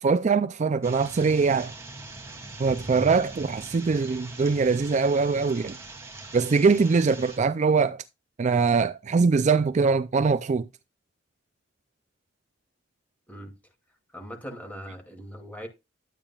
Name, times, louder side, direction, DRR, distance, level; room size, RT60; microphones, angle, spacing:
voice 1, 0.0-1.7 2.6-5.8 6.3-8.0 8.4-10.7, right 4 dB, 40° right, 0.4 m, -22 dB
sound 1, 0.8-7.4, right 2 dB, 15° right, 2.5 m, -41 dB
voice 2, 14.1-15.7, equal, 10° left, 2.5 m, -40 dB
11.5 x 8.8 x 2.3 m
head